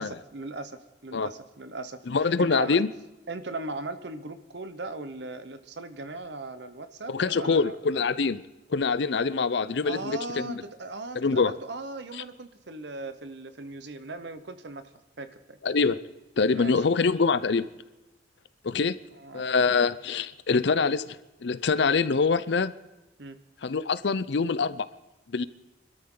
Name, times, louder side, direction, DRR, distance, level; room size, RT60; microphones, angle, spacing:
voice 1, 0.0-2.0 2.4-2.8 3.3-7.8 9.8-14.9 15.2-15.6 16.5-16.8 19.2-19.5 23.2-23.4, right 2 dB, 60° right, 0.9 m, -38 dB
voice 2, 2.1-2.9 7.1-8.4 8.7-10.6 11.1-11.5 15.6-16.0 16.4-17.7 18.6-19.0 19.3-22.7 23.6-24.9 25.3-25.5, left 4 dB, 60° left, 0.5 m, -25 dB
25.0 x 13.0 x 3.9 m
head